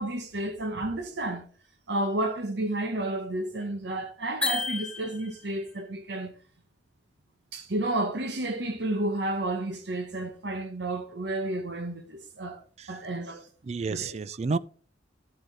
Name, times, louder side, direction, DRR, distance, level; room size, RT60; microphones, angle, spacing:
voice 1, 0.0-1.5 1.9-6.3 7.5-12.6 12.9-13.4 13.9-14.1, right 1 dB, 60° right, 1.0 m, -31 dB
sound 1, 4.4-5.6, left 3 dB, 5° left, 1.0 m, -31 dB
voice 2, 13.6-14.6, right 4 dB, 35° right, 0.3 m, -30 dB
12.0 x 7.9 x 3.3 m
head